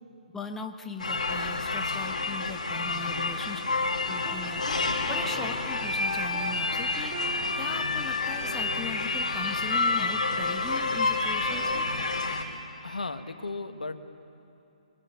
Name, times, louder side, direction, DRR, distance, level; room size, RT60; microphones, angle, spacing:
voice 1, 0.3-3.7 4.1-7.3 7.6-11.9, left 3 dB, 5° left, 4 dB, 1.4 m, -40 dB
sound 1, 1.0-12.4, left 3 dB, 70° left, 4.3 m, -29 dB
voice 2, 3.0-3.4 12.4-12.5 12.8-14.0, left 3 dB, 90° left, 8 dB, 1.6 m, -36 dB
sound 2, 3.8-12.1, right 5 dB, 20° right, 2.8 m, -46 dB
23.5 x 23.5 x 9.5 m, 2.8 s
hypercardioid pair, 145°, 4 cm